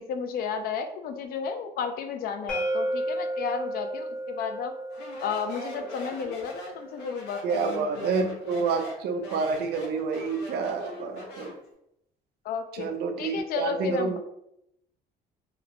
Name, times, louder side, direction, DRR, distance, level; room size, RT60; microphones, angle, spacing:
voice 1, 0.0-4.7 5.2-8.2 12.4-12.9 13.2-14.2, left 6 dB, 65° left, 7 dB, 0.4 m, -33 dB
sound 1, 2.5-8.3, right 1 dB, 5° left, 0.7 m, -34 dB
Speech, 4.9-11.6, left 1 dB, 90° left, 0.9 m, -42 dB
voice 2, 7.4-11.5 12.8-14.2, right 4 dB, 70° right, 6 dB, 0.5 m, -28 dB
2.9 x 2.0 x 2.5 m, 0.79 s
cardioid pair, 110°, 17 cm